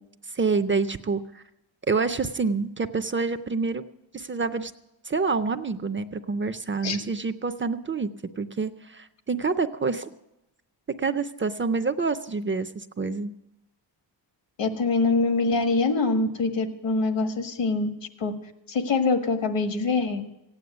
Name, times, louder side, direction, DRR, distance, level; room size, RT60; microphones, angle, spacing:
voice 1, 0.3-1.4 1.9-3.8 4.1-4.7 5.0-8.1 8.4-10.1 11.0-13.3, right 4 dB, 30° right, 11 dB, 0.5 m, -27 dB
voice 2, 14.6-17.9 18.2-18.3 18.7-20.2, left 3 dB, 75° left, 7 dB, 1.7 m, -24 dB
15.5 x 9.4 x 7.9 m, 0.91 s
wide cardioid pair, 130°, 44 cm